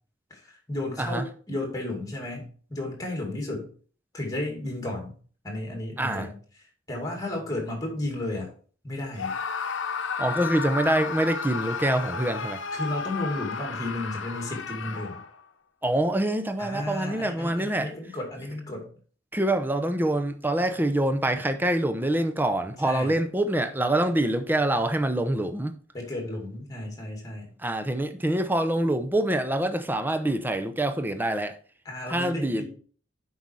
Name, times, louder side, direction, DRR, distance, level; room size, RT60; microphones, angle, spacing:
voice 1, 0.3-3.7 4.1-5.1 5.4-6.4 6.9-8.5 8.8-9.3 12.7-15.2 16.6-18.9 22.8-23.2 25.9-27.5 31.8-32.7, left 1 dB, 20° left, 2.5 m, -33 dB
voice 2, 6.0-6.3 10.2-12.6 15.8-17.9 19.3-25.7 27.6-31.6 32.1-32.7, right 1 dB, 10° right, 0.7 m, -25 dB
Screaming, 9.1-15.4, left 5 dB, 80° left, 0.8 m, -32 dB
8.1 x 5.5 x 4.7 m
head